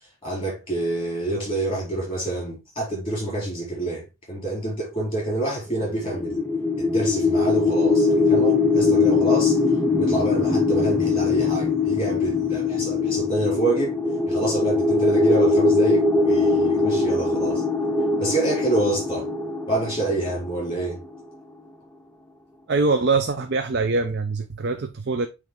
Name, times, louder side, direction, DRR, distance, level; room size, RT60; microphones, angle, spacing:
voice 1, 0.2-6.4 6.8-9.6 10.0-14.0 14.3-17.6 18.2-19.3 19.7-21.0, right 2 dB, 25° left, 4.3 m, -27 dB
sound 1, 5.8-20.9, left 3 dB, 5° left, 0.5 m, -21 dB
voice 2, 22.7-25.3, right 3 dB, 50° right, 0.5 m, -23 dB
8.9 x 3.3 x 3.6 m
head